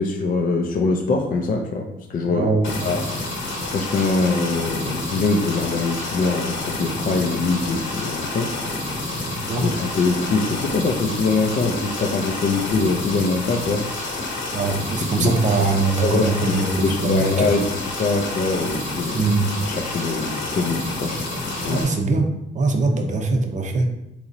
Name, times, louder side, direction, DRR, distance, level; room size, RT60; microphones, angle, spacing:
voice 1, 0.0-2.5 2.8-3.2 3.7-8.5 9.6-13.8 14.9-15.3 16.0-19.2 19.7-21.3 21.5-21.8, left 3 dB, 45° left, 3 dB, 0.4 m, -23 dB
voice 2, 2.3-2.8 9.5-9.7 14.5-17.5 19.1-19.5 21.7-22.3 22.5-23.8, right 3 dB, 40° right, 4 dB, 0.6 m, -22 dB
sound 1, 2.6-21.8, left 2 dB, 80° left, 1.1 m, -29 dB
3.9 x 3.0 x 2.6 m, 0.83 s
cardioid pair, 90°, 20 cm